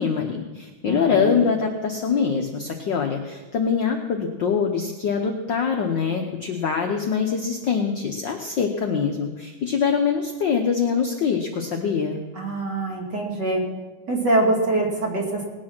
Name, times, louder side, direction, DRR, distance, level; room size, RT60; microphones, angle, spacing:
voice 1, 0.0-12.2, left 6 dB, 80° left, 3 dB, 1.0 m, -24 dB
voice 2, 0.8-1.4 12.3-13.6 14.1-15.4, right 2 dB, 35° right, -1 dB, 2.5 m, -24 dB
19.0 x 8.8 x 6.0 m, 1.2 s
omnidirectional pair, 3.4 m